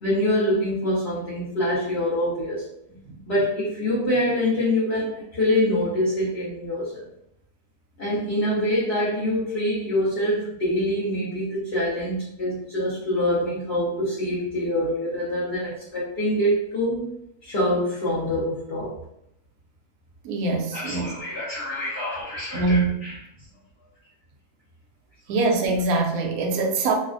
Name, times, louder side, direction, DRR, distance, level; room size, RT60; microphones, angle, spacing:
voice 1, 0.0-2.6 3.3-7.0 8.0-17.2 17.4-19.0 20.7-23.2, left 1 dB, 55° left, -9 dB, 0.9 m, -25 dB
voice 2, 20.2-21.1 22.5-23.1 25.3-26.9, right 3 dB, 70° right, 0 dB, 1.0 m, -23 dB
3.2 x 2.0 x 2.4 m, 0.77 s
omnidirectional pair, 1.7 m